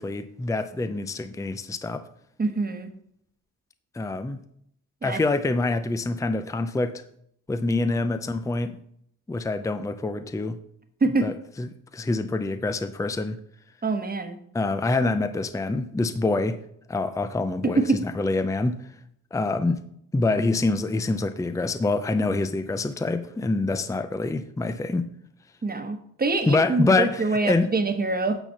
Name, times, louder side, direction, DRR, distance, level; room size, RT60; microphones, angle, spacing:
voice 1, 0.0-2.1 3.9-4.4 5.0-7.0 7.5-8.8 9.3-10.6 11.2-13.4 14.5-16.6 16.9-18.8 19.3-19.8 20.1-25.1 26.5-27.7, left 3 dB, 10° left, 0.5 m, -26 dB
voice 2, 2.4-2.9 5.0-5.2 11.0-11.3 13.8-14.4 17.6-18.0 25.6-28.4, right 3 dB, 30° right, 1.2 m, -25 dB
9.0 x 4.2 x 7.0 m
wide cardioid pair, 115°, 33 cm